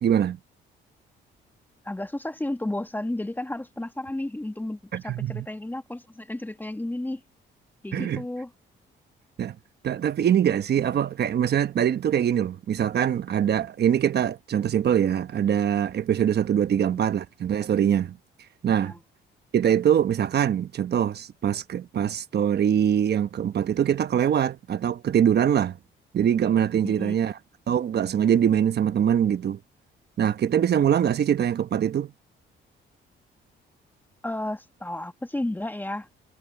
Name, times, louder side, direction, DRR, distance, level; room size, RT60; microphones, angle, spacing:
voice 1, 0.0-0.4 4.9-5.5 7.9-8.2 9.4-9.6 9.8-18.2 18.6-18.9 19.5-25.8 26.1-27.4 27.7-29.6 30.2-32.1, right 9 dB, 55° right, 1.1 m, -23 dB
voice 2, 1.8-7.2 7.8-8.5 16.7-17.0 18.8-19.0 26.8-27.2 34.2-36.1, left 1 dB, 10° left, 1.2 m, -32 dB
cardioid pair, 90°, 20 cm